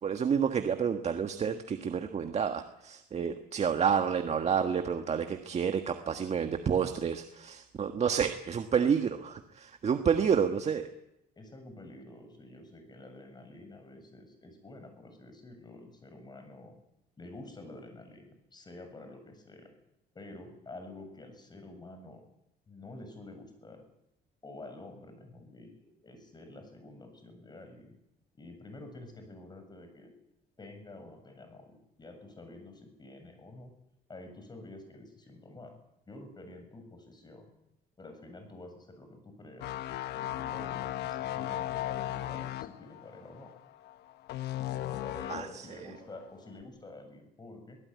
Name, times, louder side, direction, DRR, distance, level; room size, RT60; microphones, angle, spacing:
voice 1, 0.0-10.9 45.3-45.5, right 7 dB, 40° right, 7 dB, 1.6 m, -29 dB
voice 2, 11.4-16.8 17.2-19.7 20.1-22.2 22.7-23.8 24.4-28.0 28.3-30.1 30.6-33.7 34.1-35.8 36.1-37.5 38.0-39.7 40.1-43.5 44.6-47.8, left 2 dB, 25° left, 6 dB, 7.6 m, -49 dB
sound 1, 39.6-45.6 46.0-46.2, left 13 dB, 80° left, 1.2 m, -36 dB
24.0 x 17.5 x 9.7 m, 0.85 s
cardioid pair, 110°, 17 cm